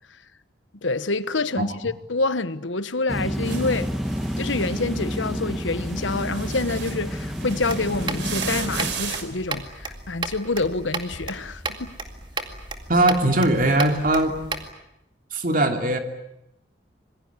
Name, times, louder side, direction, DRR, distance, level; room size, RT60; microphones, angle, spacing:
voice 1, 0.8-3.9 4.4-12.0, left 3 dB, 85° left, 1.2 m, -27 dB
sound 1, 3.1-8.9, equal, ahead, 1.5 m, -29 dB
sound 2, 3.5-9.2, right 6 dB, 75° right, 3.7 m, -36 dB
sound 3, 7.6-14.7, right 3 dB, 25° right, 2.2 m, -34 dB
voice 2, 12.9-14.4 15.3-16.0, right 1 dB, 45° right, 2.8 m, -20 dB
27.0 x 21.5 x 9.7 m
head